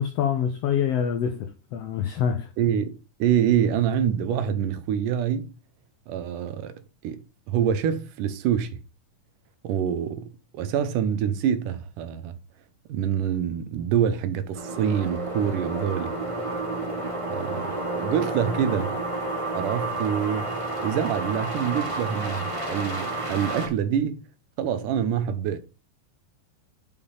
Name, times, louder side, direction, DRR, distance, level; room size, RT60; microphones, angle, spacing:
voice 1, 0.0-2.5, left 8 dB, 85° left, 1.4 m, -26 dB
voice 2, 2.6-5.5 6.1-6.7 7.0-8.8 9.6-12.4 12.9-16.1 17.3-19.0 19.5-20.5 20.8-24.2 24.6-25.6, right 9 dB, 80° right, 2.5 m, -26 dB
sound 1, 14.5-23.7, right 2 dB, 60° right, 0.3 m, -30 dB
6.7 x 5.3 x 5.6 m
omnidirectional pair, 3.7 m